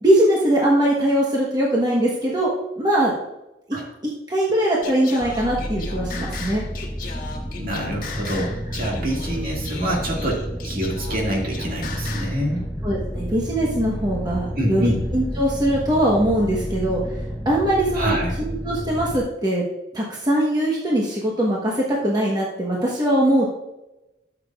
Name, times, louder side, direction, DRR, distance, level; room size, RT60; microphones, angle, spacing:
voice 1, 0.0-3.1 3.7-3.8 4.3-6.6 8.8-9.0 12.8-17.0 17.4-19.6 19.9-23.4, right 1 dB, 25° right, -4 dB, 1.2 m, -21 dB
Singing, 4.8-12.4, left 4 dB, 50° left, 1.3 m, -37 dB
sound 1, 5.2-19.2, equal, 5° left, 0.6 m, -30 dB
voice 2, 7.5-12.7 14.6-15.0 17.9-18.3, equal, 50° right, -2 dB, 2.2 m, -26 dB
12.5 x 7.0 x 2.4 m, 0.95 s
head